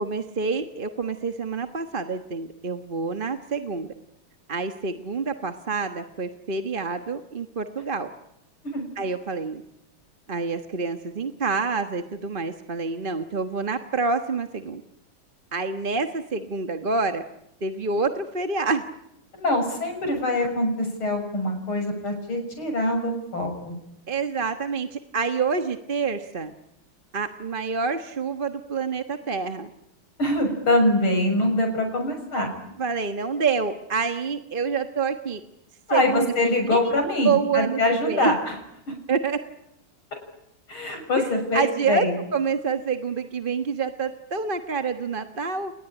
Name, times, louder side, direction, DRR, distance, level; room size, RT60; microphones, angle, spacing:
voice 1, 0.0-3.9 4.5-8.1 9.0-9.6 10.3-14.8 15.5-17.2 17.6-18.8 24.1-26.5 27.1-29.7 32.8-35.4 35.9-36.9 37.2-38.3 39.1-39.4 41.2-42.1 42.3-45.7, right 5 dB, 30° right, 7 dB, 1.2 m, -27 dB
voice 2, 19.3-23.8 30.2-32.5 35.9-38.6 38.9-39.0 40.7-42.1, left 1 dB, 85° left, 5 dB, 7.3 m, -24 dB
29.5 x 20.0 x 10.0 m, 0.83 s
omnidirectional pair, 2.2 m